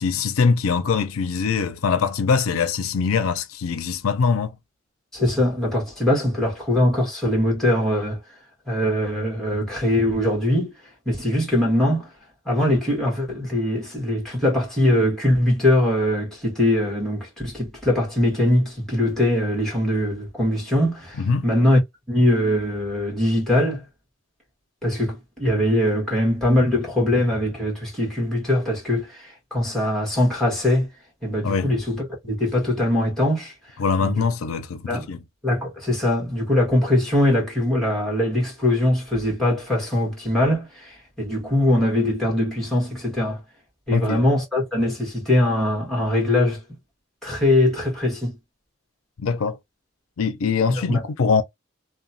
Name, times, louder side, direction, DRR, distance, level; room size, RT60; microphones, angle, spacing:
voice 1, 0.0-4.6 21.2-21.5 31.4-31.7 33.8-35.2 43.9-44.2 49.2-49.6 50.2-51.4, left 5 dB, 85° left, 0.5 m, -22 dB
voice 2, 5.1-8.2 8.7-10.7 11.0-12.1 12.4-21.8 22.1-23.8 24.8-30.9 31.2-33.5 34.0-34.2 34.9-35.0 35.4-43.4 43.9-46.6 47.2-48.3 50.7-51.0, left 1 dB, ahead, 1.4 m, -22 dB
2.9 x 2.2 x 2.6 m
head